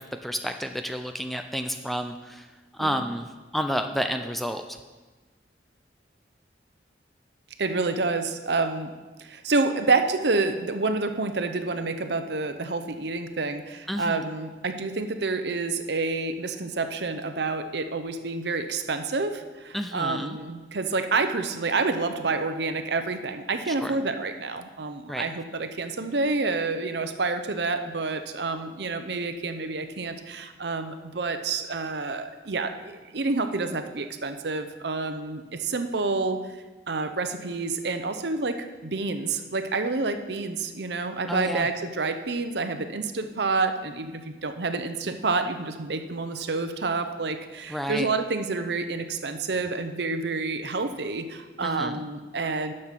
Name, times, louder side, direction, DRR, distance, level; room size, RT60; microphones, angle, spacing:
voice 1, 0.0-2.5 2.8-3.3 3.5-4.8 13.9-14.2 19.7-20.4 23.8-24.0 25.1-25.2 41.3-41.7 47.7-48.1 51.6-52.0, equal, ahead, 6 dB, 0.4 m, -30 dB
voice 2, 7.6-8.9 9.2-36.4 36.9-52.7, right 3 dB, 65° right, 8 dB, 0.7 m, -28 dB
10.5 x 6.6 x 5.8 m, 1.3 s
head